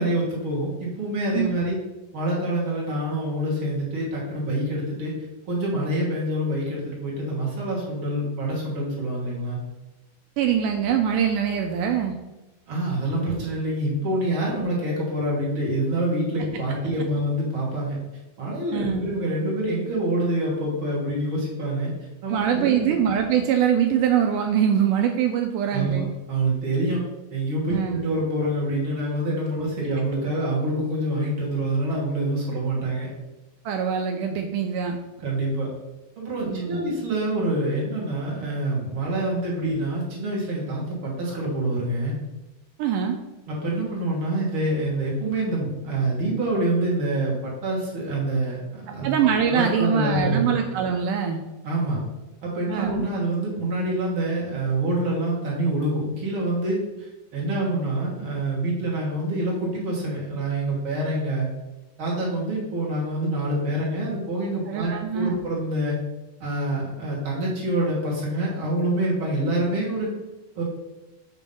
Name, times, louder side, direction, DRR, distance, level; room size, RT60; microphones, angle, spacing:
voice 1, 0.0-1.8 2.1-5.1 5.5-9.6 12.7-18.0 18.4-21.9 22.2-22.9 25.7-27.0 27.3-33.1 35.2-35.7 36.2-42.2 43.5-49.2 49.5-50.5 51.6-52.0 52.4-61.5 62.0-65.9 66.4-70.1 70.5-70.6, right 1 dB, 50° right, -4 dB, 1.6 m, -26 dB
voice 2, 10.4-12.2 18.7-19.1 22.3-26.1 27.7-28.0 33.7-35.0 36.4-37.0 42.8-43.2 49.0-51.4 52.7-53.1 64.7-65.4, right 8 dB, 85° right, 4 dB, 1.9 m, -23 dB
6.9 x 3.1 x 5.2 m, 1.0 s
omnidirectional pair, 4.2 m